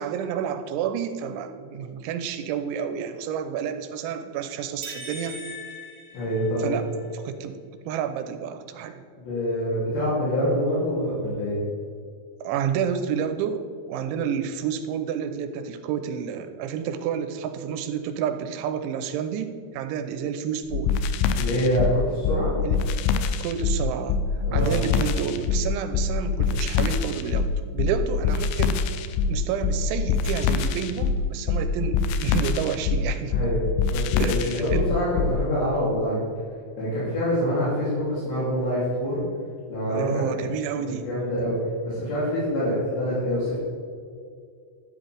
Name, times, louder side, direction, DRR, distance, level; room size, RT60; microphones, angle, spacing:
voice 1, 0.0-5.4 6.6-6.8 7.2-7.6 7.9-9.0 12.4-21.0 22.6-22.8 23.4-24.2 24.5-28.7 29.3-33.4 34.2-34.8 39.9-41.1, right 8 dB, 85° right, 8 dB, 3.0 m, -30 dB
sound 1, 4.8-7.0, left 1 dB, 30° right, 3.3 m, -40 dB
voice 2, 6.1-6.7 9.2-11.6 21.4-22.5 24.4-24.9 33.3-33.6 33.9-36.2 36.8-39.2 39.7-40.4 40.8-41.6 41.8-43.6, equal, 65° left, -9 dB, 5.0 m, -26 dB
sound 2, 20.7-35.4, left 5 dB, 85° left, 3.0 m, -24 dB
12.5 x 10.5 x 3.4 m, 2.2 s
omnidirectional pair, 5.4 m